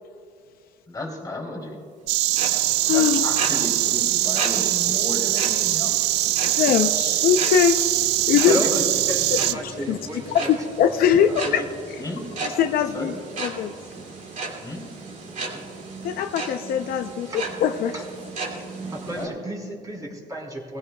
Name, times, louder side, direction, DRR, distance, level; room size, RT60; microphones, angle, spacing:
voice 1, 0.9-1.8 2.9-5.9 8.4-8.7 12.0-12.3 12.9-13.2 14.6-14.9 19.0-19.3, left 1 dB, 20° left, 0 dB, 3.0 m, -33 dB
sound 1, 2.1-19.3, right 3 dB, 50° right, 2.4 m, -35 dB
Insect, 2.1-9.5, right 16 dB, 80° right, 0.4 m, -22 dB
voice 2, 2.8-3.3 6.6-8.0 8.3-8.6 9.3-10.0 10.3-11.6 12.4-13.7 16.0-17.9, left 8 dB, 65° left, 7 dB, 0.6 m, -22 dB
voice 3, 8.2-10.5 11.2-11.7 15.5-15.8 17.3-17.4 17.9-18.0 18.9-20.8, equal, 20° right, -2 dB, 3.6 m, -32 dB
20.0 x 15.5 x 2.3 m, 2.4 s
cardioid pair, 110°, 17 cm